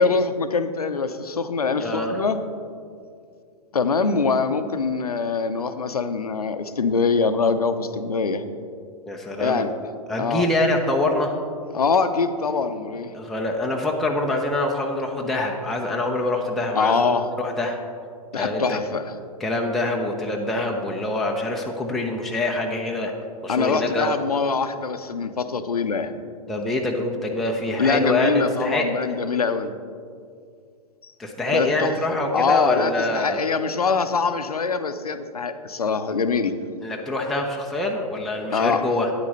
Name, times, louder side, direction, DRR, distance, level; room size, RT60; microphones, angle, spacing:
voice 1, 0.0-2.4 3.7-8.4 9.4-9.7 10.2-10.5 11.7-13.1 16.8-17.2 18.3-19.0 23.5-26.1 27.8-29.7 31.5-36.5 38.5-38.8, left 4 dB, 75° left, 10 dB, 0.7 m, -23 dB
voice 2, 1.8-2.2 9.1-9.7 10.1-11.3 13.1-17.8 18.3-18.8 19.4-23.1 23.4-24.1 26.5-29.2 31.2-33.5 36.8-39.1, left 2 dB, ahead, -1 dB, 0.6 m, -25 dB
9.8 x 8.4 x 4.1 m, 2.3 s
figure-of-eight pair, 110°, 19 cm